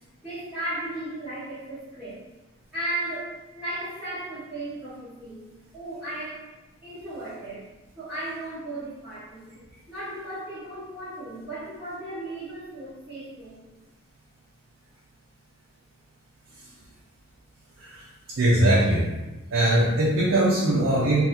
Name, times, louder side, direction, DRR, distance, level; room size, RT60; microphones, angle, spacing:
voice 1, 0.2-2.2 2.7-5.4 5.7-6.5 6.8-7.6 8.0-9.5 9.9-13.6, right 1 dB, 5° right, -15 dB, 0.9 m, -35 dB
voice 2, 18.4-19.1 19.5-21.2, right 1 dB, 80° right, -6 dB, 0.6 m, -21 dB
2.7 x 2.4 x 3.6 m, 1.1 s
head